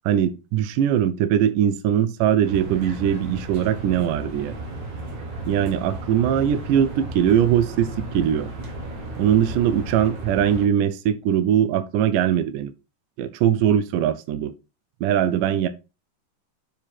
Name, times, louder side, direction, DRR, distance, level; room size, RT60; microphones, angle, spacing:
voice 1, 0.1-4.5 5.5-8.5 9.2-12.7 13.2-14.5 15.0-15.7, right 9 dB, 80° right, 2.1 m, -21 dB
sound 1, 2.4-10.7, right 2 dB, 60° right, 3.1 m, -34 dB
7.2 x 5.2 x 4.4 m
omnidirectional pair, 3.8 m